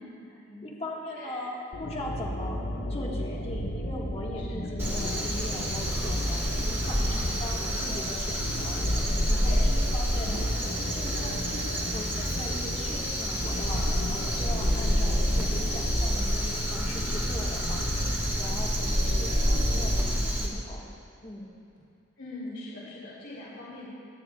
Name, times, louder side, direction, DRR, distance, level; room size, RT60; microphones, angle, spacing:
voice 1, 0.3-2.6 2.9-10.6 10.9-20.9 21.2-21.5, left 1 dB, 30° left, -3 dB, 1.5 m, -40 dB
sound 1, 1.7-20.2, equal, 90° left, 1.4 m, -33 dB
Crow, 4.8-20.5, equal, 10° right, 1.5 m, -29 dB
voice 2, 6.9-7.2 9.4-9.6 22.2-23.9, left 2 dB, 60° left, -7 dB, 2.8 m, -42 dB
26.0 x 10.0 x 2.4 m, 2.5 s
head